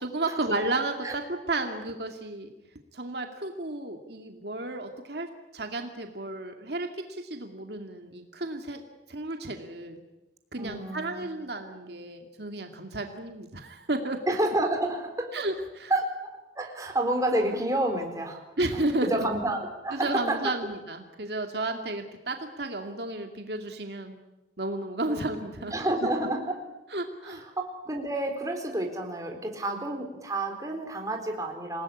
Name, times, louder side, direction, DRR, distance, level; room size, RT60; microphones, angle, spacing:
voice 1, 0.0-2.5 2.9-8.8 9.1-10.0 10.5-14.2 15.3-15.9 18.6-19.3 19.9-24.2 24.6-25.7 26.9-27.4, right 2 dB, 60° right, 4 dB, 2.3 m, -32 dB
voice 2, 10.6-11.3 14.3-15.4 15.9-18.4 18.7-18.8 19.1-20.5 25.1-25.3 25.7-26.6 27.2-31.8, right 1 dB, 20° right, 3 dB, 4.2 m, -29 dB
28.0 x 19.0 x 9.9 m, 1.0 s
head